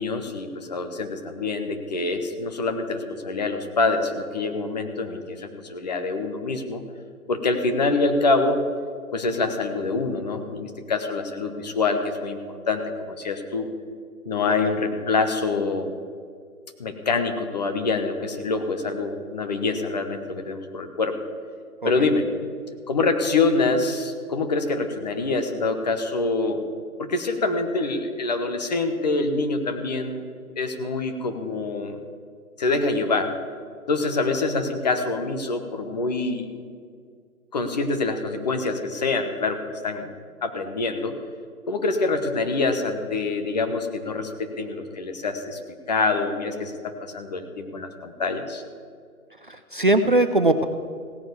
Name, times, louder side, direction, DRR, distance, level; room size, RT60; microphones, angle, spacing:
voice 1, 0.0-6.8 7.3-8.6 9.1-13.7 14.2-15.9 16.8-21.2 21.8-22.3 22.9-26.6 27.0-30.2 30.6-32.0 32.6-33.3 33.9-36.5 37.5-40.1 40.4-41.2 41.7-45.6 45.9-48.6, left 3 dB, 30° left, 6 dB, 1.1 m, -25 dB
voice 2, 49.5-50.6, right 2 dB, 35° right, 8 dB, 0.5 m, -20 dB
16.5 x 9.1 x 7.0 m, 2.1 s
figure-of-eight pair, 150°, 44 cm